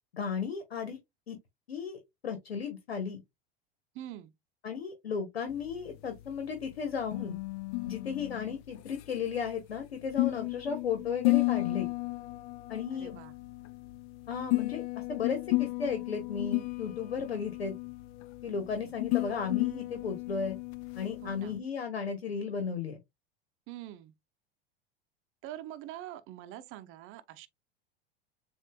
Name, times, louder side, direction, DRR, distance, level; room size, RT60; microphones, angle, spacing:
voice 1, 0.1-1.0 1.3-1.4 1.7-3.2 4.6-7.4 7.8-11.9 12.7-13.2 14.3-17.7 18.4-20.6 20.9-23.0, left 6 dB, 85° left, 1.1 m, -35 dB
voice 2, 3.9-4.3 12.9-13.3 21.2-21.6 23.7-24.1 25.4-27.5, right 13 dB, 45° right, 0.7 m, -44 dB
sound 1, 5.5-21.6, left 24 dB, 45° left, 0.6 m, -34 dB
7.3 x 2.6 x 2.2 m
hypercardioid pair, 90°, 30 cm